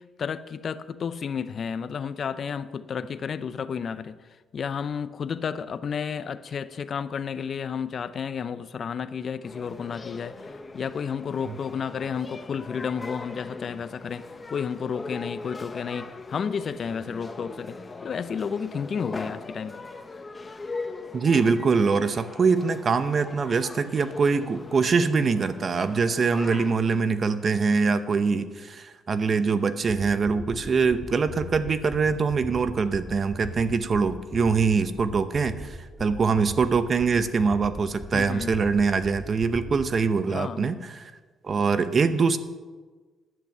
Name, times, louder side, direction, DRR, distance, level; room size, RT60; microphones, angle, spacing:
voice 1, 0.0-19.8 38.1-38.6 40.3-40.6, left 6 dB, 50° left, 14 dB, 0.5 m, -32 dB
sound 1, 9.4-26.7, left 3 dB, 25° left, 1.0 m, -40 dB
voice 2, 21.1-41.1 41.4-42.4, right 5 dB, 45° right, 12 dB, 0.8 m, -23 dB
sound 2, 29.8-40.1, left 1 dB, 10° left, 1.3 m, -40 dB
11.0 x 9.0 x 6.7 m, 1.4 s
cardioid pair, 90°, 0 cm